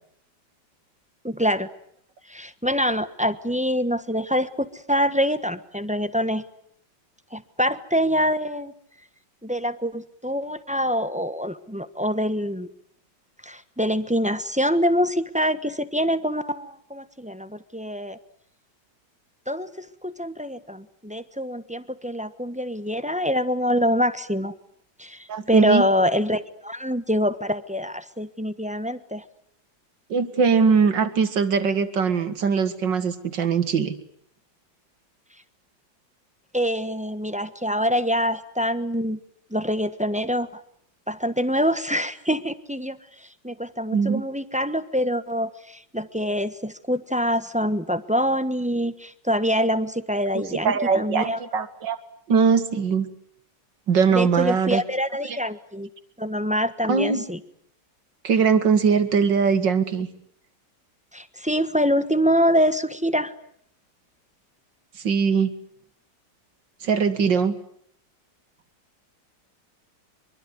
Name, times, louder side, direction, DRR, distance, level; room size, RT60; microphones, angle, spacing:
voice 1, 1.2-1.7 2.3-6.4 7.3-8.7 9.4-12.7 13.4-18.2 19.5-24.5 25.0-29.2 36.5-39.2 39.5-40.6 41.1-51.4 54.1-55.9 56.2-57.4 61.1-63.3, equal, 5° right, 13 dB, 0.9 m, -25 dB
voice 2, 25.3-25.9 30.1-33.9 43.9-44.2 50.3-52.0 52.3-53.1 53.9-54.8 55.2-55.4 56.9-57.2 58.2-60.1 65.0-65.5 66.8-67.6, right 5 dB, 75° right, 11 dB, 2.6 m, -21 dB
24.5 x 24.0 x 9.7 m, 0.67 s
omnidirectional pair, 2.0 m